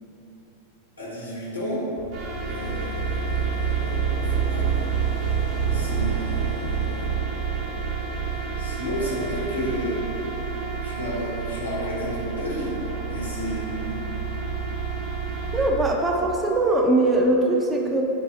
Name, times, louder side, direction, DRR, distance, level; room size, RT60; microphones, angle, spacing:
voice 1, 1.0-1.9 2.5-4.9 5.6-7.1 8.3-10.4 10.8-12.8 13.1-14.0, equal, 80° left, -6 dB, 1.0 m, -32 dB
sound 1, 2.0-15.7, right 6 dB, 50° right, 0.8 m, -28 dB
voice 2, 15.5-18.0, right 2 dB, 15° right, 1 dB, 0.4 m, -21 dB
5.2 x 2.0 x 4.8 m, 2.9 s
figure-of-eight pair, 90°, 0 cm